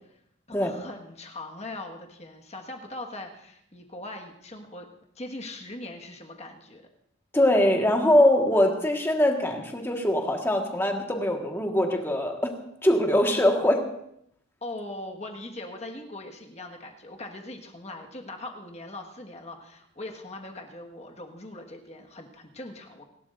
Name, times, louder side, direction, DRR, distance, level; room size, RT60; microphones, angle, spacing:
voice 1, 0.5-4.9 5.1-6.8 14.6-23.1, left 2 dB, 35° left, 2 dB, 1.7 m, -40 dB
voice 2, 7.3-12.5 12.8-13.9, left 1 dB, 10° left, 2 dB, 1.6 m, -22 dB
30.0 x 12.0 x 2.6 m, 0.75 s
head